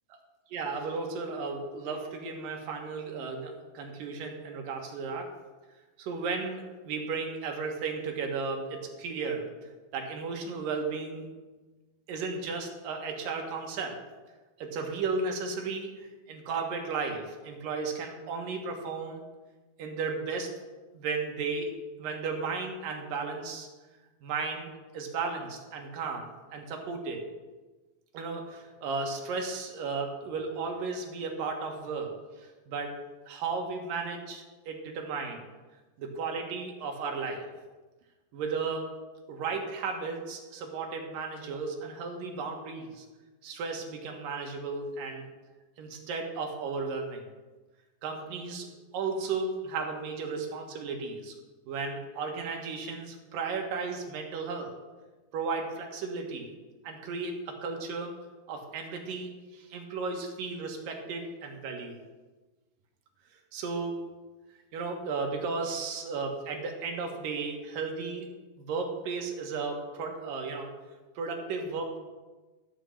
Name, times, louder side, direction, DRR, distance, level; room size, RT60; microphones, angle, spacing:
voice 1, 0.5-5.3 6.0-9.5 9.9-11.3 12.1-14.0 14.6-19.2 19.8-20.5 20.9-21.7 22.0-23.7 24.2-27.2 28.1-32.1 32.4-33.0 33.3-35.4 36.0-37.5 38.3-38.9 39.3-43.1 43.4-45.2 45.8-47.2 48.0-48.7 48.9-51.3 51.7-54.7 55.3-56.5 56.8-58.2 58.5-62.0 63.5-64.0 64.7-68.3 68.6-70.7 71.2-72.0, right 4 dB, 75° right, 2 dB, 3.1 m, -34 dB
13.5 x 5.1 x 7.2 m, 1.2 s
omnidirectional pair, 4.0 m